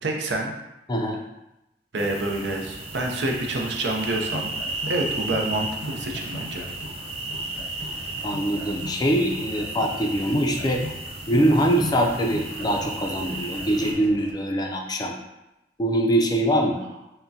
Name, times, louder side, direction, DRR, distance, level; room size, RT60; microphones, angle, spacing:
voice 1, 0.0-0.6 1.9-4.5 4.9-6.7, right 2 dB, 80° right, 1 dB, 0.6 m, -27 dB
voice 2, 0.9-1.2 8.2-10.8 11.3-15.2 15.8-16.8, right 1 dB, 25° left, 2 dB, 0.4 m, -23 dB
sound 1, 2.0-13.9, right 2 dB, 35° right, 0.5 m, -34 dB
sound 2, 4.0-14.3, left 1 dB, 80° left, 0.6 m, -40 dB
5.6 x 2.1 x 2.7 m, 0.92 s
head